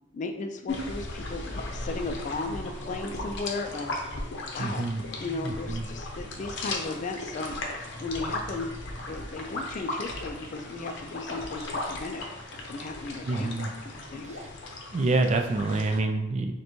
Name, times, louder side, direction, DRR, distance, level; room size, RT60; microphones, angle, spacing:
voice 1, 0.1-4.0 4.5-4.9 5.2-7.6 8.0-8.7 9.1-12.2 12.6-13.6 13.8-14.3, left 3 dB, 40° left, 4 dB, 0.3 m, -35 dB
sound 1, 0.7-16.0, left 2 dB, 65° left, 0.7 m, -37 dB
voice 2, 4.6-5.0 5.4-5.8 13.2-13.7 14.3-14.5 14.9-16.5, right 2 dB, 35° right, 6 dB, 0.3 m, -27 dB
6.4 x 2.2 x 3.0 m, 1.0 s
head